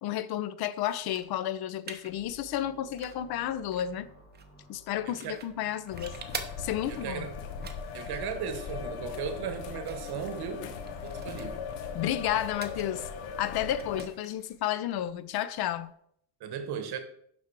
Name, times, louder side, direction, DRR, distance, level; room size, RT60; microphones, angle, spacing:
voice 1, 0.0-4.1 4.7-6.1 6.6-7.3 11.9-13.1 13.4-15.9, left 11 dB, 55° left, 0.6 m, -32 dB
sound 1, 0.7-15.9, right 5 dB, 20° right, 0.8 m, -48 dB
sound 2, 2.1-8.5, right 1 dB, 30° left, 2.1 m, -57 dB
voice 2, 5.0-5.4 6.9-7.3 7.9-10.7 11.0-11.6 16.4-17.0, right 7 dB, 55° right, 1.3 m, -36 dB
sound 3, 5.9-14.1, left 6 dB, 70° left, 1.1 m, -39 dB
6.0 x 5.9 x 4.7 m
cardioid pair, 130°, 45 cm